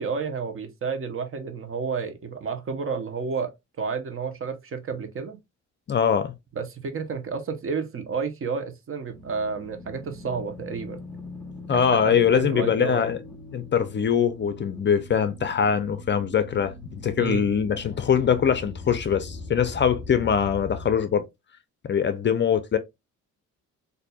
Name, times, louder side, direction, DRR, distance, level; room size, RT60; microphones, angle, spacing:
voice 1, 0.0-3.5 3.8-5.4 6.5-11.0 11.7-13.1 17.2-17.5, right 5 dB, 45° right, 0.9 m, -31 dB
voice 2, 5.9-6.3 11.7-13.2 13.5-21.3 21.9-22.8, left 7 dB, 40° left, 0.5 m, -23 dB
sound 1, 9.1-21.0, left 2 dB, ahead, 0.9 m, -41 dB
4.1 x 2.7 x 2.3 m
cardioid pair, 90°, 30 cm